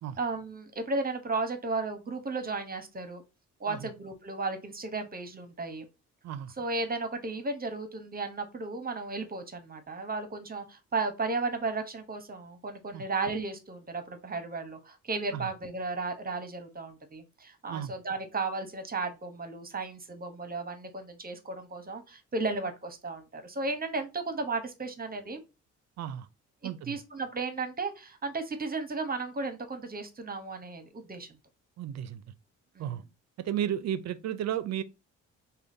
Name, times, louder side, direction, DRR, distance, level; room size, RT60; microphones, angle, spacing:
voice 1, 0.2-3.2 3.6-5.8 6.6-25.4 26.6-31.3 32.8-32.9, right 3 dB, 30° right, 0.8 m, -34 dB
voice 2, 26.0-26.3 26.6-27.0 31.8-32.2 32.8-33.0 33.4-34.8, right 10 dB, 60° right, 0.5 m, -33 dB
4.9 x 2.2 x 2.6 m
cardioid pair, 90°, 30 cm